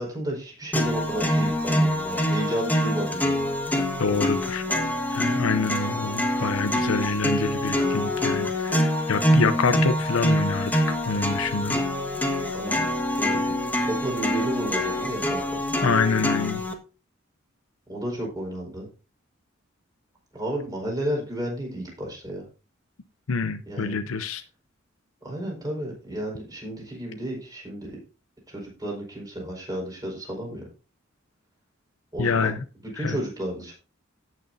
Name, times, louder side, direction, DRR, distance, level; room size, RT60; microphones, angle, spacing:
voice 1, 0.0-3.4 12.5-12.9 13.2-13.5 13.8-15.6 17.9-18.9 20.3-22.4 23.7-24.0 25.2-28.0 28.5-30.6 32.1-32.6 32.9-33.7, right 1 dB, 20° right, 4.7 m, -32 dB
sound 1, 0.7-16.7, equal, 10° left, 1.4 m, -25 dB
voice 2, 4.0-4.6 5.1-11.8 15.8-16.6 23.3-24.4 32.2-32.6 32.9-33.2, left 4 dB, 85° left, 0.7 m, -26 dB
17.0 x 6.4 x 2.6 m
head